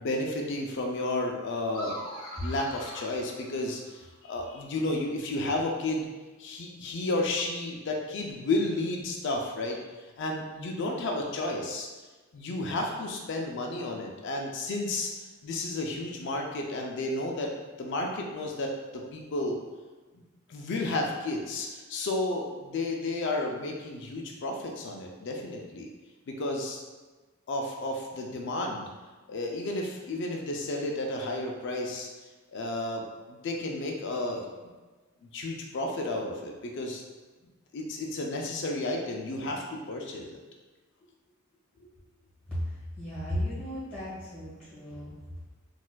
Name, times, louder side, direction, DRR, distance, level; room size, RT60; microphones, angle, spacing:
voice 1, 0.0-2.0 2.4-6.1 6.4-9.8 10.2-11.9 12.3-15.1 15.4-17.5 17.8-19.6 20.5-25.9 26.3-26.8 27.5-28.9 29.3-32.1 32.5-34.4 35.3-37.0 37.7-40.4 41.8-41.9, left 2 dB, 60° left, 1 dB, 0.4 m, -32 dB
sound 1, 1.7-4.2, equal, 20° left, 0.7 m, -42 dB
voice 2, 42.5-45.1, equal, 5° left, -11 dB, 1.3 m, -35 dB
4.1 x 2.4 x 2.2 m, 1.3 s
head